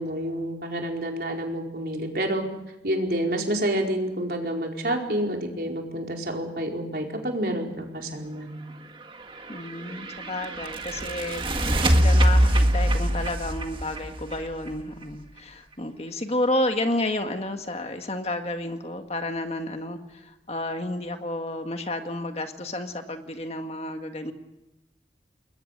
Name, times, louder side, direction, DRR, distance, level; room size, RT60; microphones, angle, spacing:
voice 1, 0.0-2.4 2.8-8.5, right 1 dB, 60° right, 1 dB, 4.6 m, -28 dB
sound 1, 9.3-15.0, equal, 30° right, 1.8 m, -23 dB
voice 2, 9.5-24.3, left 1 dB, 35° left, 6 dB, 1.7 m, -31 dB
28.5 x 21.5 x 6.7 m, 0.92 s
head